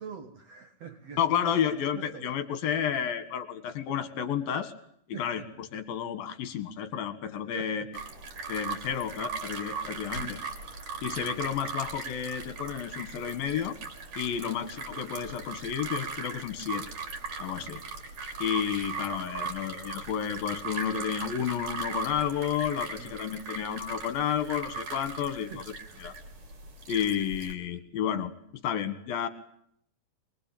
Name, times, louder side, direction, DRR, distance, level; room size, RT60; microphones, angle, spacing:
voice 1, 0.0-1.6 1.9-2.3 5.1-5.5 7.5-7.9 10.2-10.5 14.4-14.6 17.6-17.8 23.0-23.2 25.5-25.7 27.1-27.2, right 6 dB, 65° right, 8 dB, 1.6 m, -44 dB
voice 2, 1.2-4.7 5.2-5.4 5.7-7.8 8.5-10.4 11.0-13.8 14.2-16.9 17.4-17.8 18.4-25.5 26.0-26.1 26.9-28.3 28.6-29.3, left 9 dB, 60° left, 11 dB, 3.3 m, -31 dB
sound 1, 7.9-27.5, right 4 dB, 40° right, 3.8 m, -38 dB
23.5 x 23.0 x 8.7 m, 0.66 s
omnidirectional pair, 5.3 m